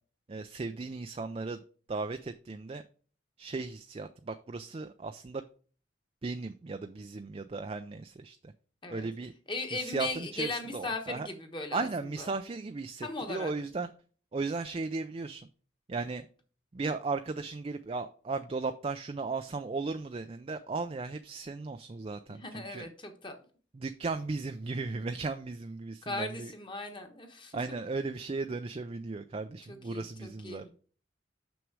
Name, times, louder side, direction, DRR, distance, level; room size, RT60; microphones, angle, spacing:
voice 1, 0.3-1.6 1.9-2.8 3.4-5.5 6.2-8.5 8.9-9.3 9.7-11.3 11.7-13.9 14.3-15.5 15.9-16.3 16.7-22.9 23.7-26.5 27.5-30.7, right 3 dB, 30° right, 9 dB, 0.4 m, -36 dB
voice 2, 9.5-11.9 12.2-12.3 13.0-13.5 22.4-23.4 26.0-27.8 29.7-30.7, left 2 dB, 25° left, 5 dB, 1.2 m, -38 dB
6.2 x 6.2 x 4.7 m, 0.42 s
head